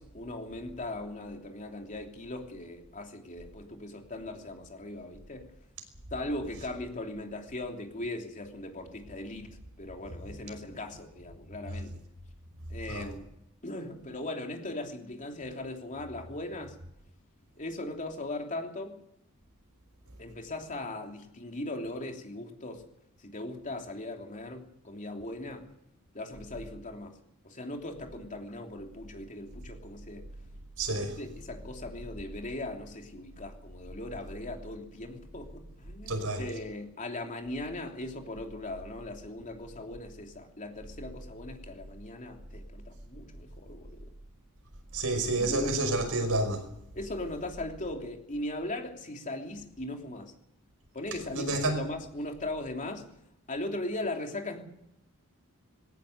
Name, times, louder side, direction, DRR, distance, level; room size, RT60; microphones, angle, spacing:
voice 1, 0.0-5.5 6.1-9.5 9.8-12.0 12.7-13.3 13.6-16.7 17.6-19.0 20.2-22.8 23.2-25.7 26.1-27.2 27.4-30.3 30.9-44.1 45.4-46.0 46.9-50.3 50.9-53.1 53.5-54.6, left 1 dB, 35° left, 3.2 m, -39 dB
voice 2, 30.8-31.2 36.1-36.4 44.9-46.7 51.3-51.8, right 2 dB, 70° right, 5.5 m, -29 dB
21.5 x 17.5 x 8.1 m
head